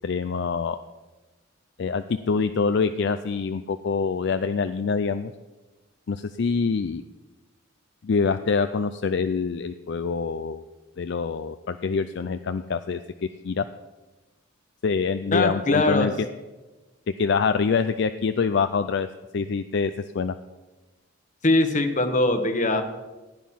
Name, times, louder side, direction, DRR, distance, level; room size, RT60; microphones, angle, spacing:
voice 1, 0.0-0.8 1.8-5.3 6.1-7.0 8.0-10.6 11.0-13.0 13.4-13.6 14.8-16.1 17.2-19.1 19.3-20.3, left 5 dB, 60° left, 11 dB, 0.4 m, -25 dB
voice 2, 15.3-16.1 21.4-22.8, left 2 dB, 40° left, 8 dB, 1.2 m, -21 dB
15.5 x 9.4 x 5.7 m, 1.2 s
head